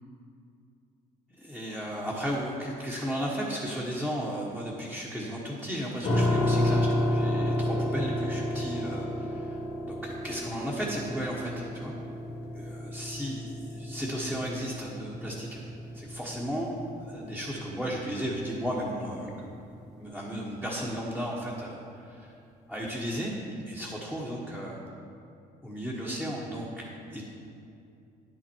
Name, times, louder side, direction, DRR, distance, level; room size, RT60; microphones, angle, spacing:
voice 1, 1.4-9.6 9.9-11.9 12.5-15.6 15.9-16.7 17.0-19.6 20.0-22.3 22.7-23.3 23.7-24.8 25.6-27.2, equal, 5° left, -5 dB, 1.3 m, -34 dB
sound 1, 6.0-18.9, left 1 dB, 75° left, 2.1 m, -31 dB
10.0 x 7.4 x 4.6 m, 2.6 s
cardioid pair, 110°, 17 cm